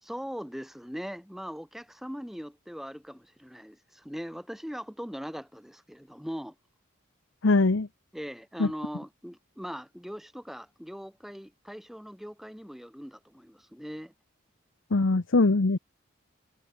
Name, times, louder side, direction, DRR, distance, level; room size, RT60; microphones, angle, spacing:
voice 1, 0.0-6.6 8.1-14.1, equal, ahead, 3.6 m, -40 dB
voice 2, 7.4-7.9 8.6-8.7 14.9-15.8, left 3 dB, 65° left, 0.9 m, -22 dB
head